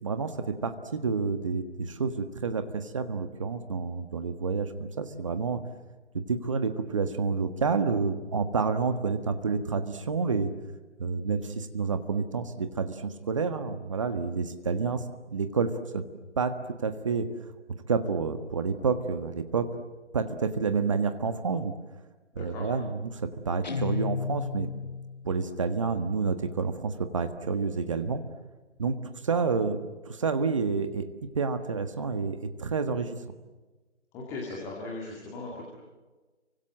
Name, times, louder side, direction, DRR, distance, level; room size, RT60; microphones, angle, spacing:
voice 1, 0.0-5.6 6.1-10.5 11.0-15.0 15.3-16.0 16.4-16.6 16.8-17.3 17.9-19.7 20.1-21.7 22.3-24.7 25.2-28.2 28.8-29.0 29.2-31.1 31.3-33.2, right 5 dB, 25° right, 9 dB, 1.5 m, -29 dB
Guitar, 23.6-25.3, left 5 dB, 35° left, 0.9 m, -33 dB
voice 2, 34.1-35.6, left 3 dB, 5° left, -3 dB, 2.3 m, -38 dB
29.5 x 25.0 x 7.7 m, 1.2 s
figure-of-eight pair, 160°, 36 cm